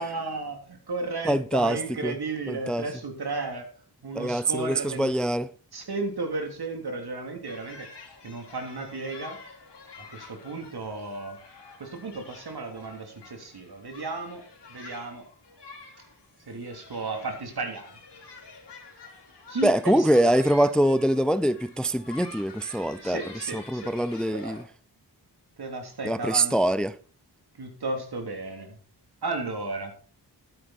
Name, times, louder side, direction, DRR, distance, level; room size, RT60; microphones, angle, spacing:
voice 1, 0.0-3.6 4.0-5.1 5.7-7.9 8.2-9.4 10.0-11.4 11.8-14.4 14.7-15.2 16.5-18.0 19.5-20.0 23.0-23.9 24.3-24.7 25.6-26.6 27.6-28.8 29.2-29.9, right 3 dB, 65° right, 3.3 m, -34 dB
voice 2, 1.2-2.2 2.5-2.9 4.1-5.5 19.6-24.6 26.0-27.0, right 1 dB, ahead, 0.4 m, -24 dB
sound 1, 7.4-24.6, left 4 dB, 85° left, 3.3 m, -48 dB
12.0 x 10.5 x 4.3 m
cardioid pair, 70°, 41 cm